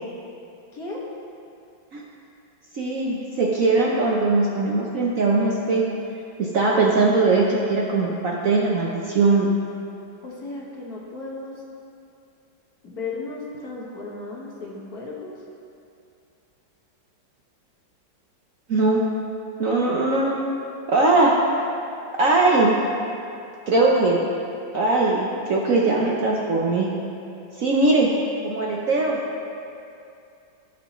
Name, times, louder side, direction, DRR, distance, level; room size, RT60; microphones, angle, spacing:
voice 1, 0.7-1.1 10.2-11.6 12.8-15.4 27.5-28.5, left 3 dB, 55° left, -4 dB, 1.8 m, -36 dB
voice 2, 2.7-5.9 6.4-9.5 18.7-19.0 19.6-20.3 20.9-21.3 22.1-22.8 23.7-24.3 24.7-26.9 27.6-28.1 28.4-29.2, right 3 dB, 60° right, -3 dB, 1.0 m, -20 dB
15.0 x 6.4 x 3.0 m, 2.6 s
omnidirectional pair, 2.1 m